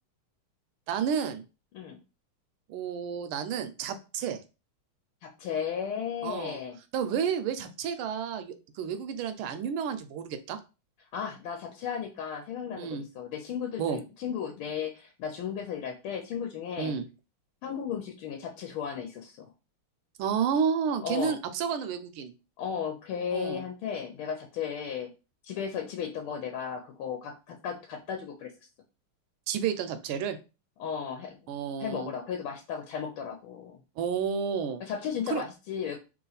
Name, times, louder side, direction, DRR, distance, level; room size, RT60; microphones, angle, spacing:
voice 1, 0.9-1.4 2.7-4.4 6.2-6.6 6.9-10.6 12.8-13.0 13.8-14.0 16.8-17.1 20.2-22.3 23.3-23.6 29.5-30.4 31.5-32.1 34.0-34.8 35.3-35.4, right 7 dB, 80° right, 9 dB, 1.4 m, -31 dB
voice 2, 5.2-6.8 11.1-16.9 17.6-19.5 21.0-21.3 22.6-25.1 25.4-28.5 30.8-31.4 31.8-33.8 34.8-36.0, left 7 dB, 80° left, 3 dB, 1.5 m, -35 dB
3.4 x 3.0 x 3.9 m, 0.30 s
omnidirectional pair, 2.3 m